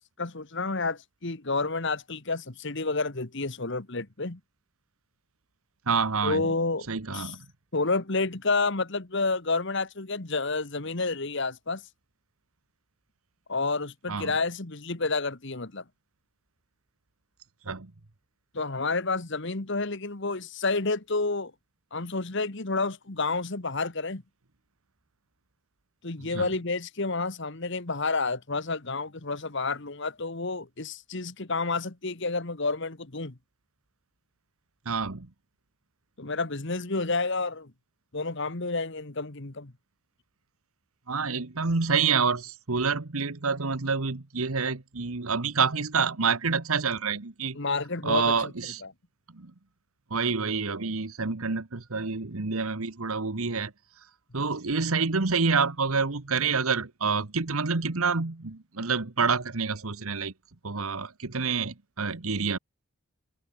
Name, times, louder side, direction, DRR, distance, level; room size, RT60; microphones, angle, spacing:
voice 1, 0.2-4.4 6.2-7.3 7.7-11.8 13.5-15.8 18.5-21.5 21.9-24.2 26.0-33.4 36.2-37.7 38.1-39.7 47.5-48.5 48.8-48.9, left 3 dB, 55° left, 1.6 m, -30 dB
voice 2, 5.9-6.5 6.9-7.4 14.1-14.3 17.6-17.9 26.2-26.5 34.8-35.3 41.1-47.6 48.0-48.8 49.3-49.5 50.1-53.7 54.3-60.3 60.6-62.6, right 5 dB, 75° right, 1.3 m, -28 dB
head